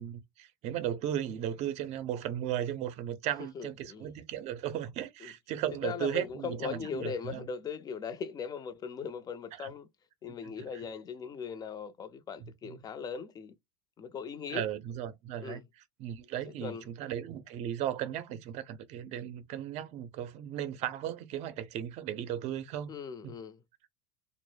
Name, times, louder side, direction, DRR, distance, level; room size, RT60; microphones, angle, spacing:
voice 1, 0.0-7.4 9.6-9.7 10.2-10.3 12.6-12.8 14.5-15.6 16.0-22.9, right 11 dB, 50° right, 0.5 m, -36 dB
voice 2, 3.4-4.1 5.2-5.3 5.8-9.9 10.2-13.5 14.0-14.7 15.4-15.6 16.6-16.9 22.9-23.6, left 6 dB, 25° left, 0.4 m, -39 dB
2.0 x 2.0 x 3.1 m
supercardioid pair, 105°, 15 cm